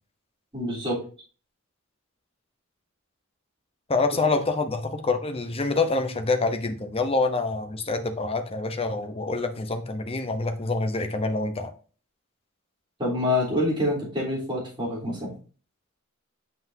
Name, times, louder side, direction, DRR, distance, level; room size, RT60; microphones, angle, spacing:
voice 1, 0.5-1.0 13.0-15.3, left 1 dB, 25° right, -6 dB, 3.6 m, -26 dB
voice 2, 3.9-11.7, left 3 dB, 25° left, 6 dB, 0.8 m, -26 dB
7.6 x 5.8 x 2.7 m, 0.37 s
head